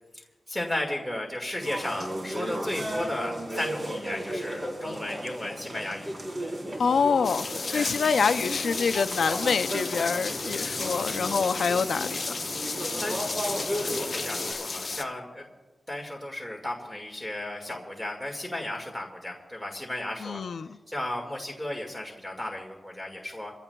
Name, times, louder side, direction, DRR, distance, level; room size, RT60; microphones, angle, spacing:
voice 1, 0.5-6.1 7.7-7.9 13.0-15.5 15.9-20.4 20.9-23.5, left 1 dB, ahead, 1.9 m, -34 dB
sound 1, 1.6-14.5, equal, 40° right, 3.8 m, -35 dB
voice 2, 6.8-12.3 20.2-20.7, left 5 dB, 85° left, 0.4 m, -26 dB
sound 2, 7.2-15.0, left 3 dB, 50° left, 1.0 m, -33 dB
26.5 x 16.0 x 2.3 m
wide cardioid pair, 100°, 0 cm